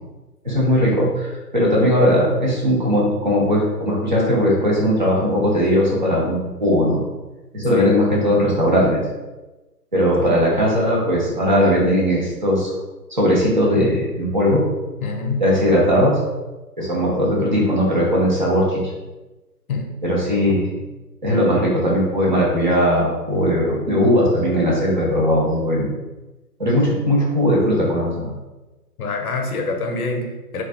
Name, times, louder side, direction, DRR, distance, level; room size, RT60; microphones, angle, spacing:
voice 1, 0.4-7.0 7.5-9.0 9.9-12.7 13.1-14.6 15.4-16.2 16.8-18.8 20.0-20.7 21.2-25.9 26.6-28.3, equal, 30° right, -5 dB, 0.5 m, -18 dB
voice 2, 15.0-15.5 19.7-20.0 20.8-20.9 29.0-30.6, left 3 dB, 65° left, 3 dB, 0.6 m, -26 dB
2.4 x 2.3 x 2.4 m, 1.1 s
figure-of-eight pair, 140°, 48 cm